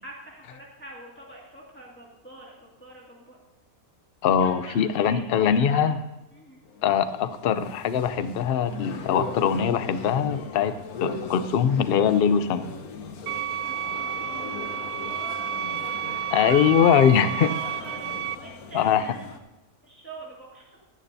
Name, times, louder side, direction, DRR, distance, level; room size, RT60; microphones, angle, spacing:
voice 1, 0.0-3.4 4.4-5.8 6.3-6.6 13.6-15.9 16.4-19.1 19.8-20.8, right 2 dB, 10° left, -3 dB, 1.9 m, -44 dB
voice 2, 4.2-6.0 6.8-10.7 11.0-12.7 16.3-17.5 18.7-19.2, left 8 dB, 55° left, 12 dB, 0.6 m, -22 dB
sound 1, 6.6-19.4, left 4 dB, 80° left, 1.4 m, -39 dB
sound 2, 13.3-18.3, right 9 dB, 75° right, 1.0 m, -31 dB
15.5 x 11.5 x 2.7 m, 1.1 s
omnidirectional pair, 1.5 m